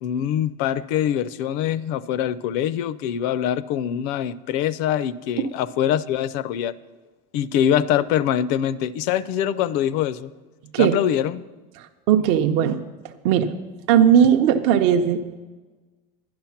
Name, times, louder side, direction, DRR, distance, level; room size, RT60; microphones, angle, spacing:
voice 1, 0.0-6.7 7.3-10.3 10.8-11.4, left 10 dB, 55° left, 18 dB, 0.5 m, -24 dB
voice 2, 11.8-12.8 13.2-13.6 13.9-15.4, right 9 dB, 55° right, 5 dB, 0.6 m, -18 dB
11.5 x 10.5 x 5.8 m, 1.3 s
cardioid pair, 170°, 20 cm